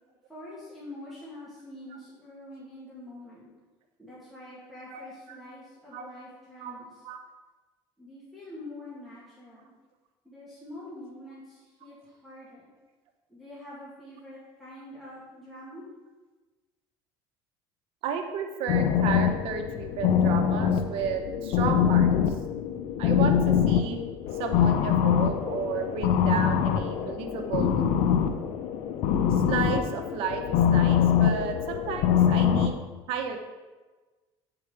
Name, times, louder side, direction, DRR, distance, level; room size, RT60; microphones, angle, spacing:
voice 1, 0.3-3.5 4.0-7.0 8.0-9.7 10.2-12.7 13.3-15.8, left 1 dB, ahead, -10 dB, 1.9 m, -45 dB
voice 2, 18.0-22.3 23.0-24.0 24.4-28.1 29.3-32.8 33.1-33.4, right 6 dB, 70° right, 5 dB, 1.0 m, -33 dB
sound 1, 18.7-32.7, left 8 dB, 75° left, 0.6 m, -24 dB
8.3 x 4.9 x 4.8 m, 1.3 s
cardioid pair, 130°, 10 cm